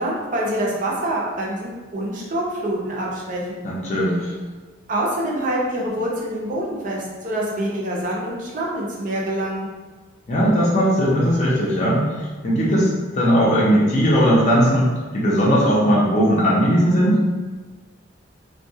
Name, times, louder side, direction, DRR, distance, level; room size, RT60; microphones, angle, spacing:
voice 1, 0.0-3.7 4.9-9.7, right 1 dB, 45° right, -3 dB, 0.6 m, -26 dB
voice 2, 3.6-4.3 10.3-12.0 12.4-14.9 15.1-17.2, equal, 40° left, -6 dB, 0.5 m, -18 dB
2.3 x 2.2 x 2.7 m, 1.3 s
head